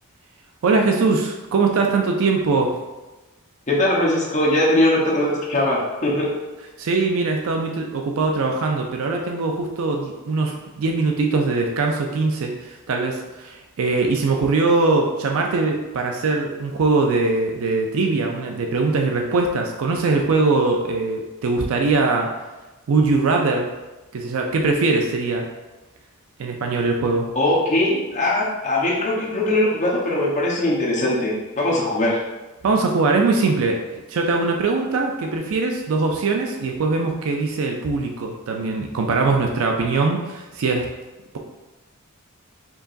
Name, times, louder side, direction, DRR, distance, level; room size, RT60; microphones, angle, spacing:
voice 1, 0.6-2.7 6.8-22.3 22.9-23.7 24.1-25.5 26.4-27.3 32.6-40.9, right 3 dB, 65° right, 2 dB, 0.4 m, -21 dB
voice 2, 3.7-6.3 27.3-32.2, left 1 dB, 35° left, -5 dB, 0.9 m, -20 dB
4.6 x 2.9 x 2.6 m, 1.1 s
head